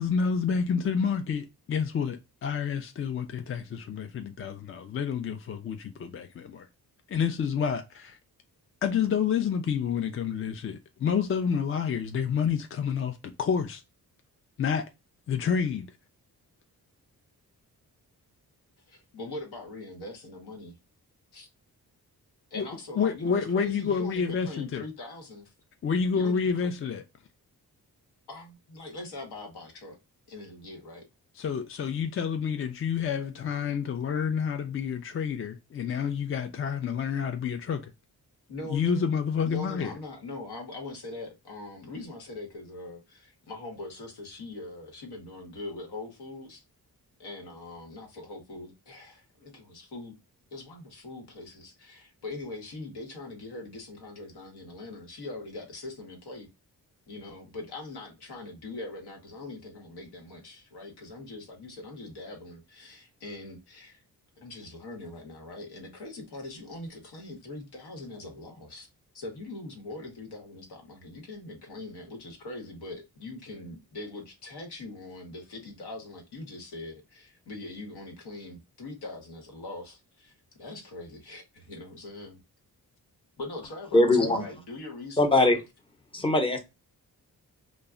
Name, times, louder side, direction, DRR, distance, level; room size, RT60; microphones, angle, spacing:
voice 1, 0.0-6.7 7.1-8.2 8.8-13.8 14.6-14.9 15.3-15.9 22.6-22.7 23.0-24.8 25.8-27.0 31.3-37.9 38.7-39.9, left 6 dB, 35° left, 0.4 m, -29 dB
voice 2, 18.9-20.7 21.3-21.5 22.5-25.5 26.1-26.7 28.3-30.0 30.3-31.0 38.5-39.1 39.4-46.6 47.2-50.1 50.5-56.5 57.1-64.0 64.4-68.9 69.1-82.4 83.4-85.6, left 2 dB, 80° left, 1.0 m, -42 dB
voice 3, 83.9-84.4 85.2-85.6 86.1-86.6, left 2 dB, 15° left, 0.8 m, -21 dB
2.2 x 2.1 x 3.6 m
cardioid pair, 55°, 39 cm